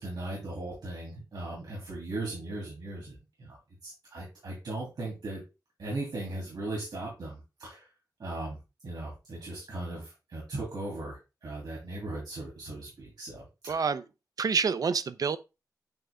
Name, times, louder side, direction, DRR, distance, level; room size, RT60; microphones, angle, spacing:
voice 1, 0.0-3.6 3.8-5.4 5.8-7.8 8.2-8.6 8.8-13.8, right 2 dB, 75° right, 3.2 m, -38 dB
voice 2, 13.7-14.0 14.4-15.4, right 5 dB, 60° right, 0.5 m, -27 dB
8.9 x 3.3 x 3.7 m
wide cardioid pair, 140°, 7 cm